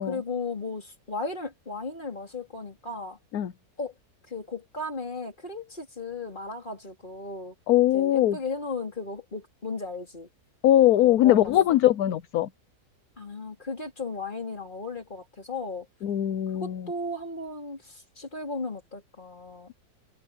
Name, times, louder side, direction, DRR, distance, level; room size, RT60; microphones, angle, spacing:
voice 1, 0.0-3.2 3.8-3.9 4.3-7.5 7.9-10.3 11.0-11.5 13.2-15.9 16.6-19.7, left 3 dB, 30° left, 3.8 m, -35 dB
voice 2, 7.7-8.4 10.6-12.5 16.0-16.9, left 13 dB, 65° left, 1.2 m, -21 dB
omnidirectional pair, 1.8 m